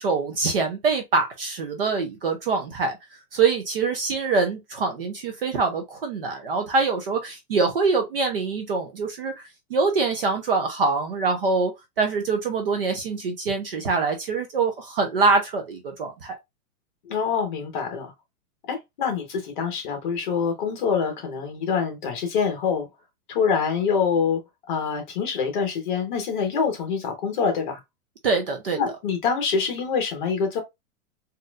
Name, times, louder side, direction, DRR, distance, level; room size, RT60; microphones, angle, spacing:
voice 1, 0.0-3.0 3.3-11.7 12.0-16.4 28.2-28.8, right 4 dB, 40° right, 0.6 m, -24 dB
voice 2, 17.0-18.1 18.7-22.9 23.3-24.4 24.7-27.8 28.8-30.6, left 6 dB, 30° left, 1.1 m, -25 dB
4.0 x 2.6 x 2.3 m
hypercardioid pair, 175°, 45 cm